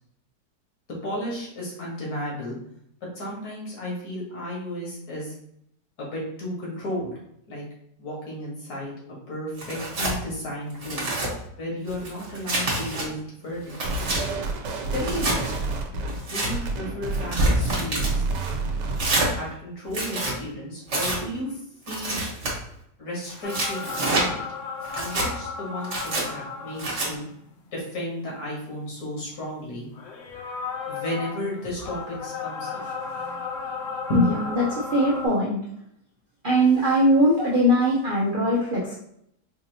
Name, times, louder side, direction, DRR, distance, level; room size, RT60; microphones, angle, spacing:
voice 1, 0.9-2.6 3.2-5.3 6.0-7.1 7.5-7.6 8.0-8.9 9.3-11.1 11.6-13.7 14.9-15.6 16.2-18.2 19.4-21.6 21.9-22.2 23.0-24.4 24.9-27.2 27.7-29.9 30.9-32.9 34.1-34.3, equal, 60° left, -4 dB, 1.9 m, -33 dB
Tearing, 9.6-10.2 10.7-11.3 11.9-13.0 13.5-14.2 15.0-15.4 16.1-16.5 17.1-18.1 19.0-19.3 19.9-20.3 20.9-21.2 21.9-22.5 23.2-24.3 24.8-25.3 25.8-26.2 26.8-27.1, right 2 dB, 45° right, 1.4 m, -26 dB
sound 1, 13.8-19.3, right 3 dB, 85° right, 1.2 m, -29 dB
sound 2, 23.4-27.5 28.0-28.1 29.9-35.3, left 5 dB, 75° left, 1.3 m, -34 dB
voice 2, 34.1-35.6 36.4-38.9, equal, 65° right, -4 dB, 0.5 m, -21 dB
4.9 x 2.7 x 2.7 m, 0.74 s
omnidirectional pair, 1.9 m